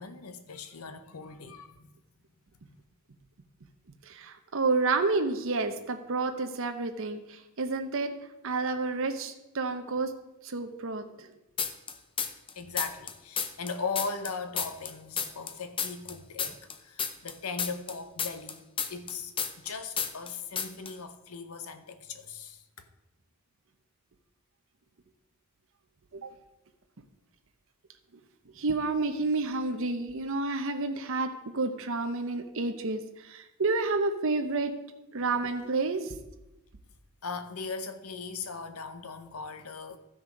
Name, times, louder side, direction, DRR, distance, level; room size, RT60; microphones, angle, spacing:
voice 1, 0.0-1.9 12.5-18.6 18.9-22.8 37.2-40.0, left 4 dB, 85° left, 0.9 m, -39 dB
voice 2, 4.1-8.1 8.4-10.1 10.4-11.3 26.1-26.3 28.5-34.7 35.1-36.2, right 3 dB, 65° right, 0.8 m, -30 dB
sound 1, 11.6-12.5 12.8-15.5 15.8-19.7 20.0-20.3 20.6-20.9, left 7 dB, 25° left, 0.7 m, -31 dB
13.5 x 6.2 x 5.1 m
head